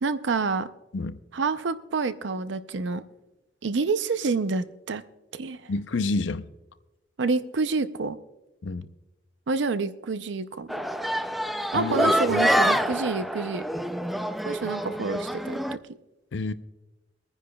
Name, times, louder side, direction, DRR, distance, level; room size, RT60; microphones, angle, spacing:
voice 1, 0.0-0.7 1.3-3.0 3.6-5.0 5.3-5.7 7.2-8.2 9.5-10.8 11.7-13.6 14.4-16.0, right 4 dB, 70° right, 0.5 m, -28 dB
voice 2, 5.7-6.5 8.6-8.9 11.7-12.4 16.3-16.5, left 3 dB, 75° left, 0.6 m, -29 dB
sound 1, 10.7-15.8, equal, ahead, 0.3 m, -26 dB
24.5 x 9.8 x 2.3 m
head